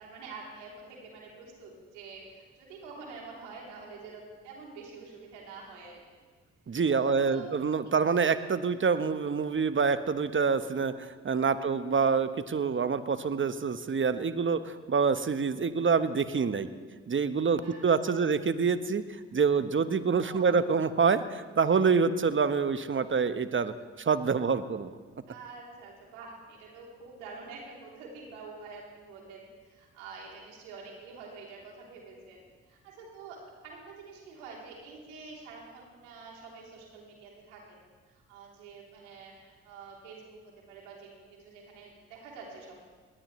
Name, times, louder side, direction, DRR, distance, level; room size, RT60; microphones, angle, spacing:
voice 1, 0.0-6.2 7.2-7.5 7.8-8.0 11.5-12.0 17.6-17.8 18.0-18.3 20.1-20.6 25.3-37.8 38.0-42.8, right 4 dB, 85° right, -2 dB, 3.4 m, -47 dB
voice 2, 6.7-16.7 17.1-19.0 19.3-25.0, right 5 dB, 35° right, 11 dB, 1.1 m, -26 dB
20.0 x 19.0 x 3.2 m, 1.5 s
hypercardioid pair, 45°, 35 cm